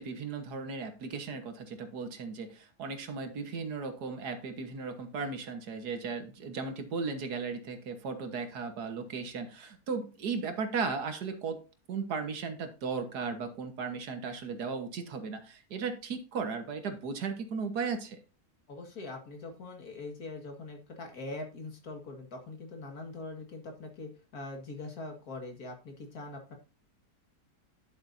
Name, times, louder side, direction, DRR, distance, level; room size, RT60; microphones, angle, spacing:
voice 1, 0.0-11.6 11.9-18.2, right 5 dB, 85° right, 7 dB, 1.9 m, -36 dB
voice 2, 18.7-26.5, left 2 dB, 70° left, 3 dB, 2.4 m, -42 dB
11.5 x 7.4 x 2.7 m, 0.33 s
omnidirectional pair, 1.7 m